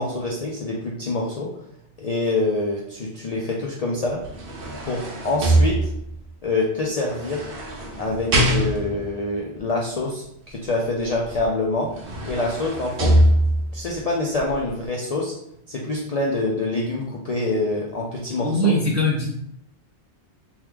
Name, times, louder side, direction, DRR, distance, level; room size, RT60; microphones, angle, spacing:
voice 1, 0.0-1.5 2.0-4.2 4.8-5.9 6.4-7.5 8.0-11.9 12.2-13.2 13.7-15.3 15.7-18.8, left 2 dB, 55° left, -2 dB, 0.4 m, -26 dB
sound 1, 4.1-6.3 7.1-9.1 11.4-11.5 11.8-13.8 14.4-14.5, right 1 dB, 60° right, 0.8 m, -22 dB
voice 2, 18.4-19.4, equal, 25° right, -3 dB, 0.4 m, -21 dB
3.0 x 2.3 x 3.4 m, 0.75 s
omnidirectional pair, 1.2 m